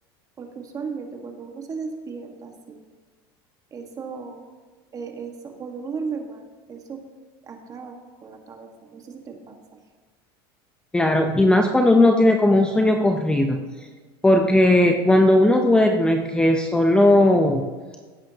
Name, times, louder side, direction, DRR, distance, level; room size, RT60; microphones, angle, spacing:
voice 1, 0.4-2.8 3.7-4.5 4.9-7.0 7.4-8.0 8.2-9.8, right 5 dB, 30° right, 4 dB, 1.6 m, -36 dB
voice 2, 10.9-13.6 14.2-17.6, left 1 dB, 5° left, 3 dB, 0.7 m, -17 dB
16.0 x 8.2 x 2.9 m, 1.4 s
supercardioid pair, 125°, 12 cm